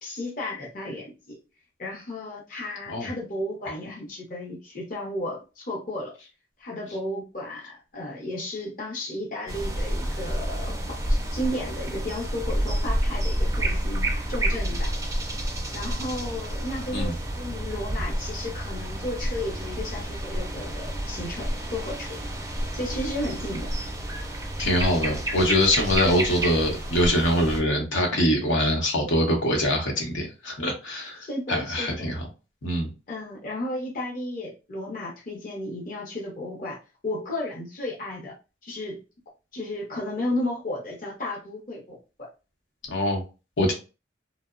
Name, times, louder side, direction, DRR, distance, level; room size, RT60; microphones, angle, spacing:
voice 1, 0.0-1.4 1.8-6.1 6.6-14.9 15.7-22.2 22.7-23.7 31.2-32.1 33.1-38.3 38.6-39.0 39.5-42.3, left 1 dB, 45° left, 0.6 m, -33 dB
sound 1, 9.5-27.6, right 1 dB, 15° right, 0.3 m, -29 dB
voice 2, 24.6-31.2 31.5-32.2 32.6-32.9 42.9-43.2 43.6-43.7, left 1 dB, 85° left, 0.8 m, -23 dB
2.7 x 2.0 x 2.4 m
head